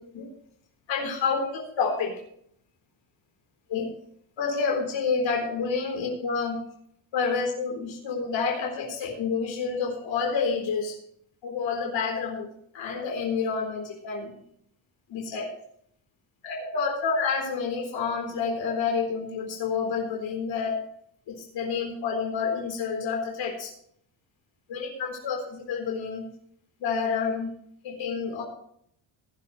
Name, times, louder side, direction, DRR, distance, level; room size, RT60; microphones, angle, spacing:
voice 1, 0.9-2.1 3.7-3.9 4.4-6.6 7.1-11.0 11.4-12.5 12.7-14.3 15.1-15.5 16.4-20.8 21.3-23.7 24.7-26.3 26.8-27.5 27.8-28.4, left 5 dB, 70° left, 0 dB, 4.1 m, -29 dB
18.5 x 11.0 x 3.3 m, 0.68 s
cardioid pair, 175°, 47 cm